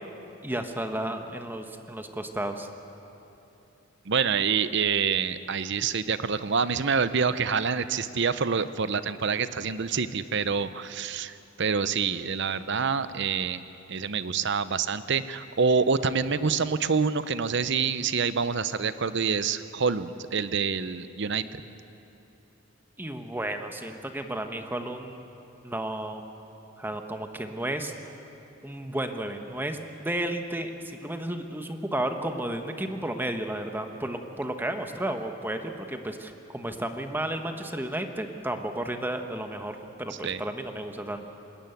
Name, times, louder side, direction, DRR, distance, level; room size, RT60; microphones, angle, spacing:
voice 1, 0.4-2.7 23.0-25.3 25.6-26.2 26.8-27.9 28.6-41.2, right 1 dB, 10° right, 5 dB, 1.2 m, -33 dB
voice 2, 4.1-13.6 13.9-21.4 40.2-40.4, right 5 dB, 55° right, 13 dB, 0.7 m, -27 dB
27.5 x 12.5 x 9.2 m, 2.9 s
head